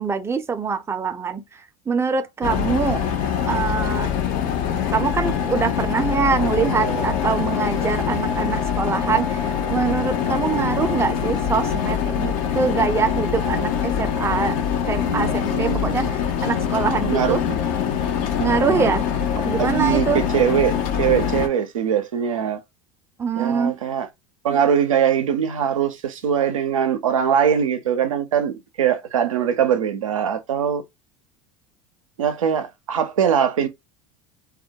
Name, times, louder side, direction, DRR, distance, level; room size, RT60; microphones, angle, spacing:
voice 1, 0.0-1.4 1.9-3.1 3.5-4.1 4.9-9.4 9.7-14.6 14.9-16.1 16.4-17.4 18.4-19.0 19.4-20.2 23.2-23.8, right 5 dB, 15° right, 0.4 m, -24 dB
sound 1, 2.4-21.5, left 7 dB, 55° left, 0.6 m, -24 dB
voice 2, 15.0-16.1 17.1-17.6 18.4-18.9 19.6-22.6 23.4-24.1 24.4-30.8 32.2-33.7, right 8 dB, 90° right, 0.5 m, -22 dB
2.2 x 2.1 x 2.7 m
hypercardioid pair, 80°, 16 cm